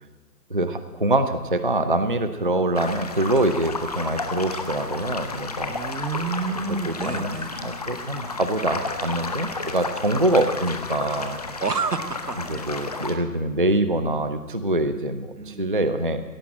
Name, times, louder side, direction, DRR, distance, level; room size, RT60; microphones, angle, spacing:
voice 1, 0.5-5.7 6.9-7.4 7.6-11.4 12.5-16.2, right 1 dB, 35° right, 10 dB, 0.5 m, -24 dB
sound 1, 2.7-13.1, left 3 dB, 25° left, 0.8 m, -32 dB
voice 2, 5.7-7.6 11.6-12.7 15.3-15.7, right 4 dB, 75° right, 12 dB, 1.2 m, -29 dB
16.5 x 10.0 x 7.5 m, 1.3 s
figure-of-eight pair, 145°, 47 cm